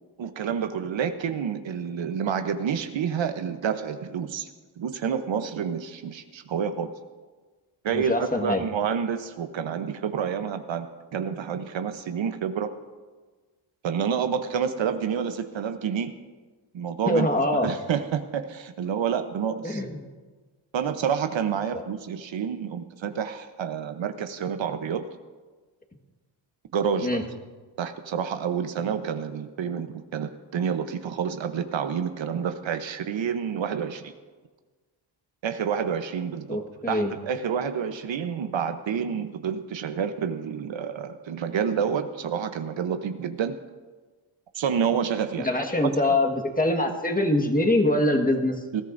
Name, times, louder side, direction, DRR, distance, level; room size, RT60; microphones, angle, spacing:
voice 1, 0.2-4.5 4.8-6.9 7.8-12.7 13.8-16.1 16.7-17.3 17.5-19.8 20.7-25.0 26.7-27.2 27.8-34.1 35.4-36.6 36.9-43.6 44.5-45.5 45.8-46.2 48.7-48.8, right 7 dB, 65° right, 9 dB, 0.9 m, -29 dB
voice 2, 7.9-8.6 17.1-17.7 19.6-19.9 21.7-21.8 27.0-27.2 36.5-37.1 45.4-48.5, left 1 dB, 15° left, 4 dB, 1.6 m, -23 dB
20.0 x 13.5 x 2.6 m, 1.4 s
cardioid pair, 70°, 50 cm